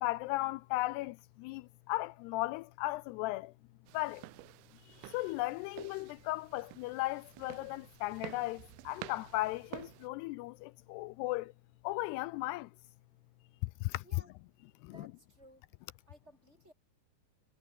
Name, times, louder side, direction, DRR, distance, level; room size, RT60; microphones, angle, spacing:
voice 1, 0.0-3.5 3.9-4.3 4.9-11.5 11.8-12.7 13.6-14.0 14.8-14.9, left 19 dB, 85° left, 2.6 m, -36 dB
sound 1, 3.9-10.1, right 21 dB, 80° right, 2.2 m, -50 dB
voice 2, 14.9-15.6 16.1-16.7, right 1 dB, 15° right, 5.3 m, -58 dB
omnidirectional pair, 4.8 m